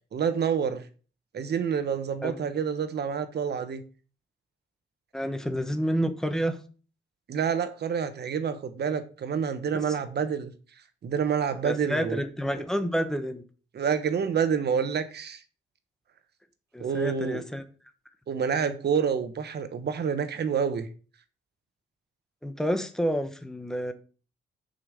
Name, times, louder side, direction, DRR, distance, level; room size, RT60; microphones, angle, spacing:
voice 1, 0.1-0.9 1.3-3.8 7.3-10.5 11.0-12.2 13.7-15.4 16.8-17.4 18.3-20.9, right 7 dB, 60° right, 1.2 m, -28 dB
voice 2, 5.1-6.6 9.7-9.8 11.6-13.4 16.7-17.6 22.4-23.9, equal, 5° left, 1.2 m, -29 dB
6.8 x 5.5 x 6.8 m
wide cardioid pair, 130°, 20 cm